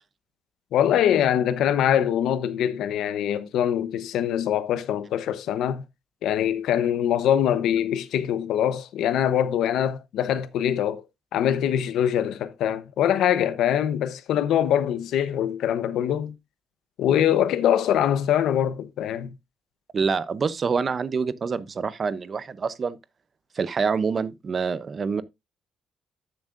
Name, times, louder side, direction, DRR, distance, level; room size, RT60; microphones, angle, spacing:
voice 1, 0.7-5.8 6.2-11.0 11.3-16.3 17.0-19.3, left 10 dB, 80° left, 0.8 m, -23 dB
voice 2, 19.9-23.0 23.5-25.2, right 5 dB, 30° right, 0.6 m, -26 dB
13.0 x 7.2 x 2.5 m
cardioid pair, 160°, 0 cm